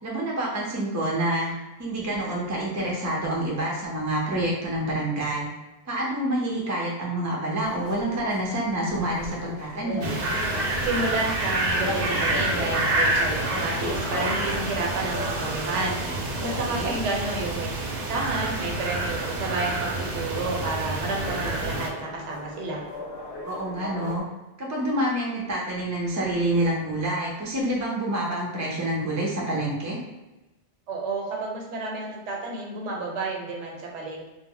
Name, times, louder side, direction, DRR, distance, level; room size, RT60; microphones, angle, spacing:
voice 1, 0.0-5.5 5.9-10.1 16.7-16.9 23.4-24.2 24.6-30.0, right 1 dB, 25° right, -3 dB, 0.3 m, -27 dB
sound 1, 7.6-24.2, left 2 dB, 65° left, 0.7 m, -38 dB
sound 2, 10.0-21.9, right 2 dB, 65° right, 0.7 m, -28 dB
voice 2, 10.8-16.0 16.4-17.7 18.1-22.8 30.9-34.3, right 3 dB, 90° right, -1 dB, 1.0 m, -30 dB
2.1 x 2.0 x 3.6 m, 1.0 s
omnidirectional pair, 1.2 m